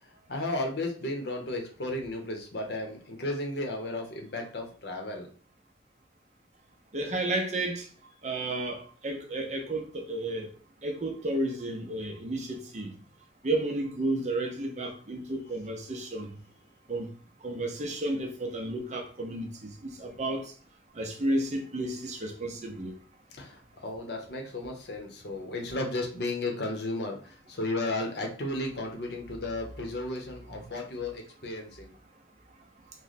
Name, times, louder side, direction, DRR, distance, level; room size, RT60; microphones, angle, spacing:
voice 1, 0.3-5.3 23.3-31.9, left 2 dB, 60° left, 0.8 m, -34 dB
voice 2, 6.9-7.9 8.2-10.5 10.8-12.9 13.4-16.3 16.9-17.1 17.4-20.5 20.9-22.9, right 1 dB, 40° right, 0.6 m, -32 dB
3.1 x 2.1 x 4.0 m
head